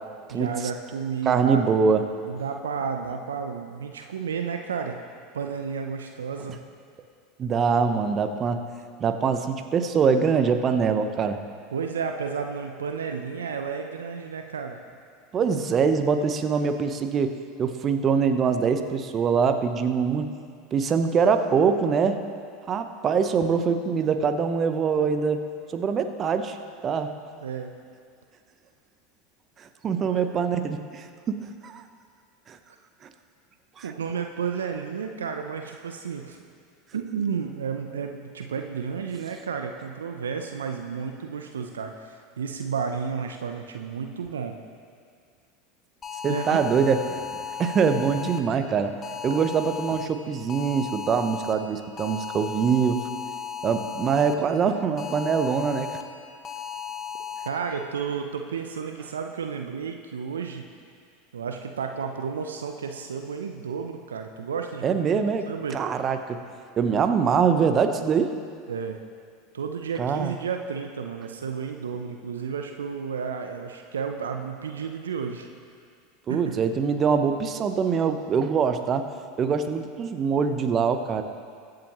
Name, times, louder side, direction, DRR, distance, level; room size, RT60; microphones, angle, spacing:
voice 1, 0.3-1.7 2.2-5.0 5.3-6.6 11.7-14.8 27.4-27.7 30.1-30.3 33.8-36.4 36.9-44.6 46.3-46.6 57.4-60.7 61.3-65.0 65.5-65.8 68.7-69.0 69.5-75.5 76.3-76.6, right 6 dB, 80° right, 5 dB, 0.7 m, -32 dB
voice 2, 1.3-2.1 7.4-8.6 9.0-11.4 15.3-20.3 20.7-22.2 22.7-25.4 25.7-26.6 26.8-27.1 29.6-31.8 32.5-32.6 33.8-33.9 46.2-47.2 47.6-48.9 49.2-53.0 53.6-55.9 64.8-66.4 66.8-68.3 70.0-70.3 76.3-79.1 79.4-81.2, right 6 dB, 35° right, 8 dB, 0.9 m, -23 dB
sound 1, 46.0-48.4 49.0-50.1 50.5-51.5 52.0-54.3 55.0-56.0 56.4-57.5, left 8 dB, 25° left, 0.9 m, -35 dB
22.0 x 7.6 x 3.1 m, 2.2 s
hypercardioid pair, 80°, 0 cm